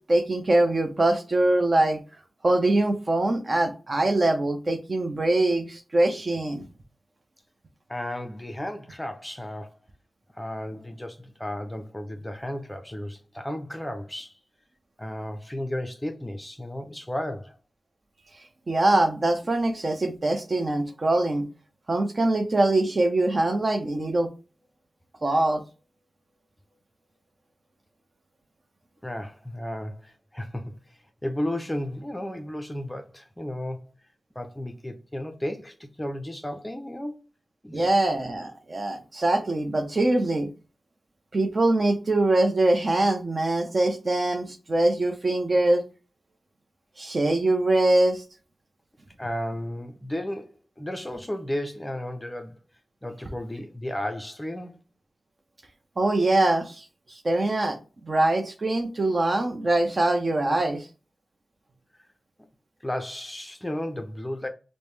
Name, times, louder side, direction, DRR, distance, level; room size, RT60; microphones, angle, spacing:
voice 1, 0.1-2.0 2.4-6.6 18.7-21.5 21.9-24.3 25.2-25.6 37.7-40.5 41.3-45.8 47.0-48.2 56.0-56.8 57.1-57.8 58.0-60.9, right 2 dB, 40° right, 0.7 m, -23 dB
voice 2, 7.9-9.8 10.3-14.3 15.0-17.6 29.0-33.8 34.4-37.2 37.6-37.9 49.2-52.6 53.0-54.8 62.8-64.5, left 1 dB, 10° left, 0.5 m, -34 dB
5.1 x 2.1 x 3.1 m
wide cardioid pair, 80°, 0 cm